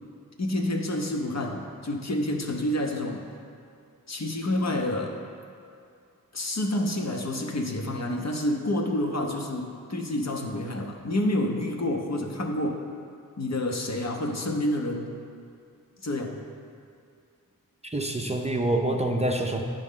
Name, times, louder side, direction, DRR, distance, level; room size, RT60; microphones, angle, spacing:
voice 1, 0.4-3.2 4.1-5.2 6.3-12.8 13.4-15.1 16.0-16.4, left 1 dB, 50° left, 2 dB, 0.8 m, -28 dB
voice 2, 17.8-19.6, right 1 dB, 20° right, 2 dB, 0.6 m, -26 dB
9.0 x 5.3 x 3.7 m, 2.5 s
cardioid pair, 50°, 35 cm